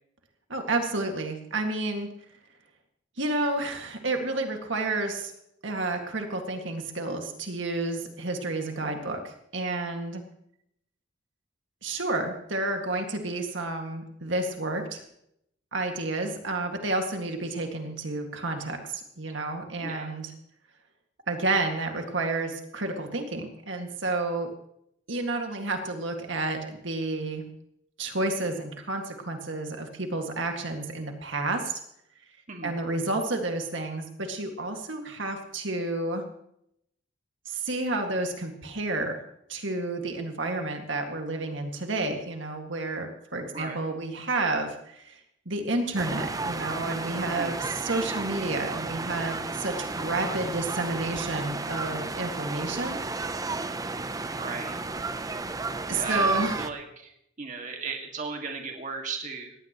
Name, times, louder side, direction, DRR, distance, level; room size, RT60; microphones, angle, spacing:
voice 1, 0.5-2.1 3.2-5.3 5.6-10.2 11.8-15.0 15.7-20.3 21.3-24.5 25.1-27.4 28.0-31.8 32.6-36.2 37.5-39.2 39.5-45.2 45.5-53.0 55.9-56.6, right 2 dB, 70° right, 4 dB, 2.0 m, -30 dB
voice 2, 32.5-32.8 43.5-44.0 47.2-47.6 54.4-54.8 55.9-59.5, right 4 dB, 40° right, 2 dB, 2.0 m, -37 dB
sound 1, 46.0-56.7, right 3 dB, 20° right, 0.6 m, -32 dB
19.0 x 16.0 x 3.0 m, 0.75 s
head